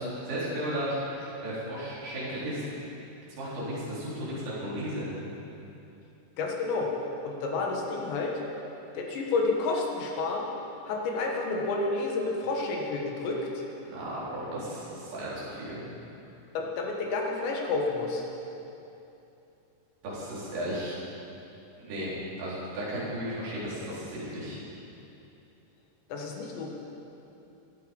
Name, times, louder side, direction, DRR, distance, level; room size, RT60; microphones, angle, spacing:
voice 1, 0.0-2.6 3.4-5.1 13.9-15.8 20.0-20.9 21.8-22.1 22.4-24.6, equal, 75° right, -9 dB, 6.5 m, -34 dB
voice 2, 6.4-6.9 7.3-8.3 8.9-10.5 10.9-13.6 16.6-18.2 26.1-26.8, left 3 dB, 75° left, 0 dB, 3.8 m, -30 dB
16.5 x 13.0 x 5.5 m, 2.9 s
omnidirectional pair, 5.3 m